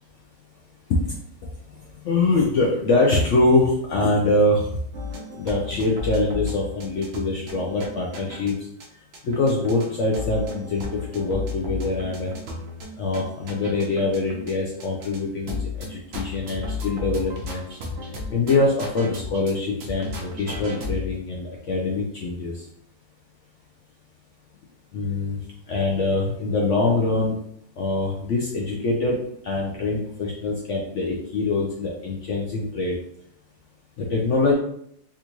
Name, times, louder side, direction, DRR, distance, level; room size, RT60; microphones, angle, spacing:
voice 1, 2.0-4.7 5.4-8.5 9.2-12.3 13.0-17.7 18.3-22.5 24.9-25.4 25.7-27.4 27.8-29.2 29.4-32.9 34.0-34.5, left 2 dB, 70° left, -2 dB, 0.7 m, -23 dB
sound 1, 4.9-8.5 8.8-8.9 9.1-14.5 14.8-15.2 15.5-19.6 19.8-21.1, left 3 dB, 75° right, 0.5 m, -34 dB
3.7 x 2.4 x 2.9 m, 0.70 s
omnidirectional pair, 1.8 m